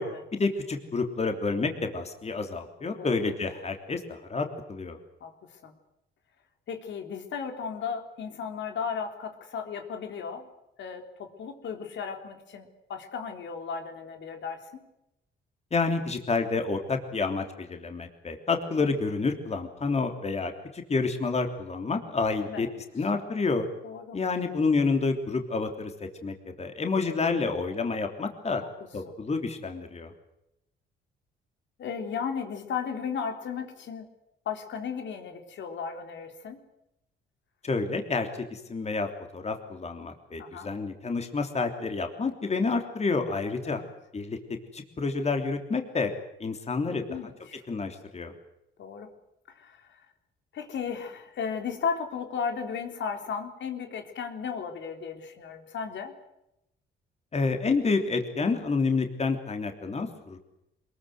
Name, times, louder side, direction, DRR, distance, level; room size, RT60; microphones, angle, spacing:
voice 1, 0.3-5.0 15.7-22.7 22.9-23.7 24.1-28.6 28.9-30.1 37.6-43.8 44.1-44.4 44.7-46.1 46.4-47.0 47.7-48.3 57.3-60.4, left 4 dB, 35° left, 5 dB, 3.4 m, -29 dB
voice 2, 5.2-5.7 6.7-10.5 10.8-14.8 18.8-19.0 22.4-22.7 23.8-24.2 28.6-28.7 29.1-29.2 31.8-34.1 34.5-36.6 40.4-40.7 43.6-43.9 46.9-47.6 48.8-49.1 49.5-49.9 50.5-56.1, left 6 dB, 70° left, 5 dB, 3.7 m, -35 dB
24.0 x 22.0 x 8.0 m, 0.85 s
cardioid pair, 90°, 20 cm